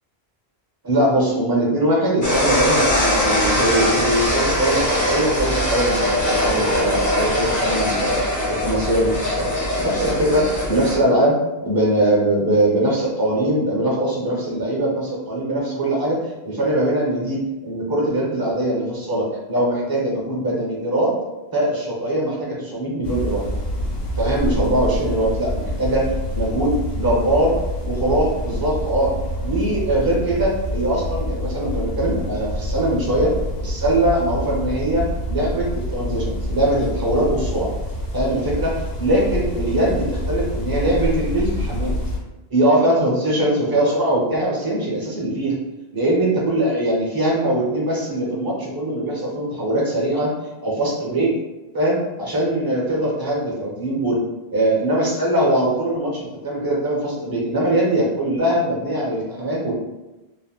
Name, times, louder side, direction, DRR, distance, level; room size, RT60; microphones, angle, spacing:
voice 1, 0.8-8.2 8.5-9.5 9.8-11.4 11.6-21.1 21.5-23.4 24.2-26.1 26.4-27.5 27.8-29.1 29.4-33.3 33.6-37.7 38.1-41.9 42.5-45.5 45.9-50.3 50.6-51.3 51.7-54.2 54.5-59.7, right 1 dB, 25° right, -3 dB, 0.6 m, -21 dB
sound 1, 2.2-11.0, left 1 dB, 25° left, 0.4 m, -21 dB
sound 2, 23.0-42.2, equal, 80° left, 1.2 m, -27 dB
3.4 x 2.1 x 2.3 m, 1.0 s
omnidirectional pair, 1.1 m